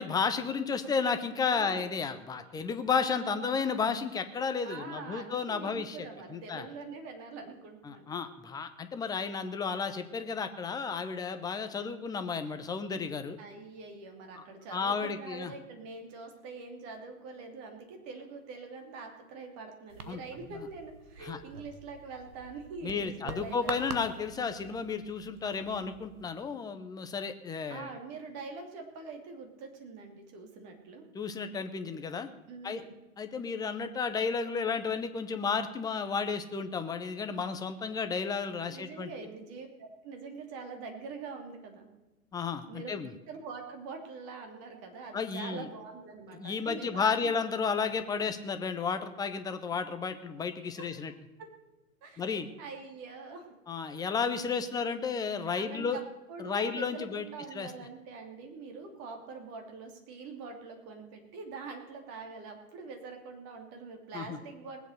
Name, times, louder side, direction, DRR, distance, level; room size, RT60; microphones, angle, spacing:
voice 1, 0.0-6.0 6.3-6.7 7.8-13.4 14.4-14.5 14.7-15.5 20.1-20.2 21.2-21.4 22.8-27.9 31.1-32.3 32.6-32.8 33.2-39.1 42.3-43.1 45.1-45.7 46.3-51.1 52.2-52.5 53.7-56.0 56.4-57.2 57.5-57.7 64.1-64.4, left 5 dB, 10° left, 9 dB, 0.7 m, -32 dB
voice 2, 1.5-1.9 2.5-2.6 3.2-3.5 4.6-8.1 13.4-23.9 27.7-31.0 32.5-32.9 38.7-41.9 42.7-43.0 43.3-47.3 50.8-50.9 52.0-53.5 53.9-54.0 55.5-64.8, right 4 dB, 35° right, 4 dB, 2.9 m, -44 dB
sound 1, 19.9-26.4, right 4 dB, 80° right, 1.6 m, -45 dB
19.5 x 8.1 x 6.7 m, 1.1 s
figure-of-eight pair, 115°, 44 cm